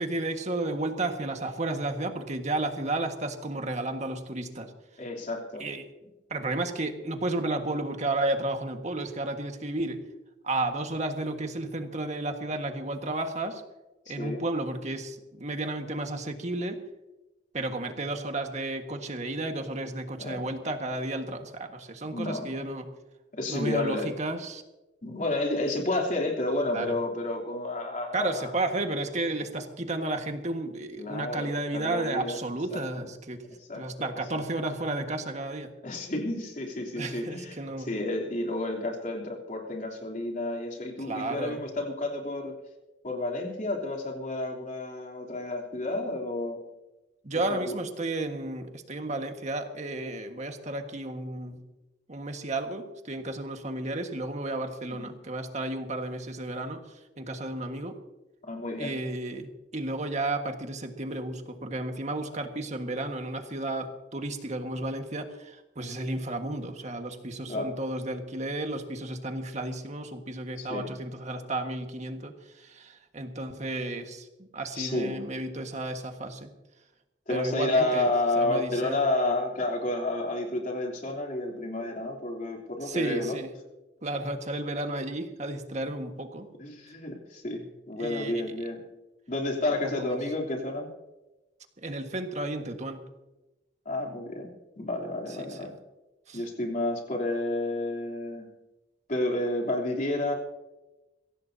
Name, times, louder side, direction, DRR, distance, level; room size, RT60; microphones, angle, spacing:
voice 1, 0.0-4.7 5.6-5.8 6.3-10.0 10.4-13.6 14.1-16.8 17.5-22.9 23.5-24.6 26.7-27.0 28.1-33.4 33.7-35.7 36.9-37.9 41.0-41.6 47.2-51.6 52.1-58.0 58.7-76.5 77.3-79.0 82.8-83.5 84.0-86.5 88.0-88.6 90.0-90.2 91.8-93.1 95.4-95.7 96.3-96.4, right 2 dB, 40° right, 5 dB, 1.6 m, -33 dB
voice 2, 5.0-5.7 14.0-14.4 20.2-20.5 22.1-22.5 23.3-24.1 25.0-28.5 31.0-32.4 32.7-32.8 33.7-34.4 35.8-42.5 43.0-46.6 47.5-47.7 54.9-55.1 58.4-59.0 67.5-67.7 70.6-70.9 74.7-75.2 77.3-83.4 86.6-88.9 89.3-90.9 93.8-95.7 96.3-98.5 99.1-100.3, left 2 dB, 45° left, 1 dB, 3.2 m, -31 dB
22.5 x 16.5 x 2.8 m, 1.0 s
head